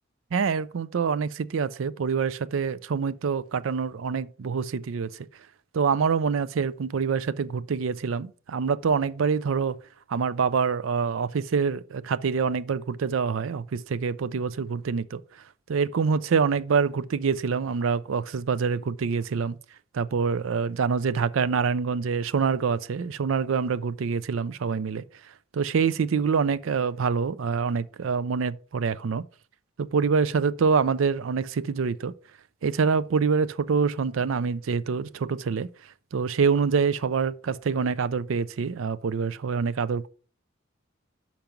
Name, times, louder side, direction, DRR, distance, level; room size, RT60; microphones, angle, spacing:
voice 1, 0.3-5.3 5.7-9.8 10.1-15.2 15.7-19.6 19.9-25.0 25.5-29.2 29.8-32.1 32.6-35.7 36.1-40.1, right 5 dB, 85° right, 0.4 m, -26 dB
5.9 x 5.2 x 5.8 m
head